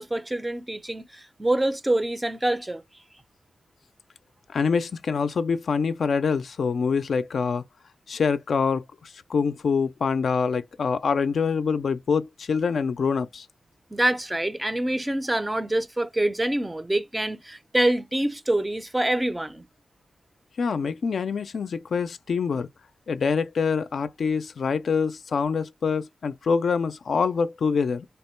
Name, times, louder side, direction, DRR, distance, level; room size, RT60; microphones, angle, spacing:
voice 1, 0.0-2.8 13.9-19.6, right 1 dB, 10° right, 0.4 m, -26 dB
voice 2, 4.5-7.6 8.1-13.5 20.6-22.7 23.1-28.1, left 5 dB, 65° left, 0.3 m, -25 dB
3.4 x 2.1 x 4.3 m
wide cardioid pair, 120°, 0 cm